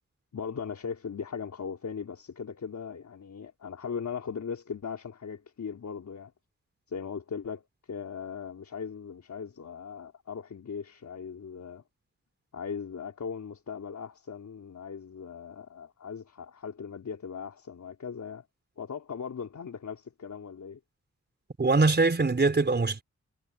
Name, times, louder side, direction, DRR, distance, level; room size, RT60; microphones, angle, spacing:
voice 1, 0.3-6.3 6.9-11.8 12.5-18.5 18.8-20.8, left 6 dB, 70° left, 4.3 m, -39 dB
voice 2, 21.6-23.0, right 3 dB, 35° right, 4.7 m, -23 dB
wide cardioid pair, 115°, 30 cm